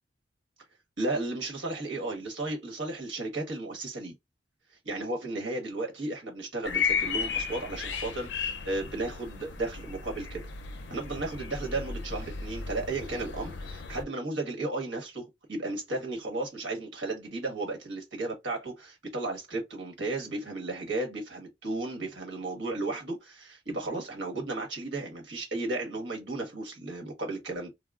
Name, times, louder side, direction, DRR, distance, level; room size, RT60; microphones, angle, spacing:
voice 1, 1.0-4.1 4.8-10.4 10.9-27.7, right 2 dB, 75° right, 1.3 m, -34 dB
sound 1, 6.6-14.0, left 5 dB, 70° left, 0.5 m, -34 dB
3.6 x 2.2 x 2.4 m
head